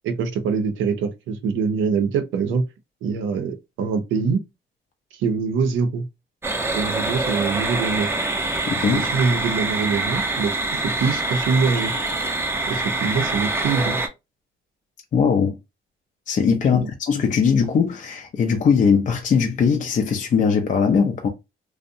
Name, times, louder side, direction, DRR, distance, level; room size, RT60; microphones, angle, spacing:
voice 1, 0.0-2.6 3.0-4.4 5.1-6.0 6.7-8.1 8.9-11.9 12.7-14.0 16.7-16.9, right 5 dB, 85° right, 0.5 m, -24 dB
sound 1, 6.4-14.1, right 2 dB, 10° right, 0.5 m, -25 dB
voice 2, 8.7-9.1 15.1-15.6 16.3-21.3, left 6 dB, 40° left, 0.4 m, -20 dB
2.6 x 2.0 x 2.5 m
cardioid pair, 90°, 20 cm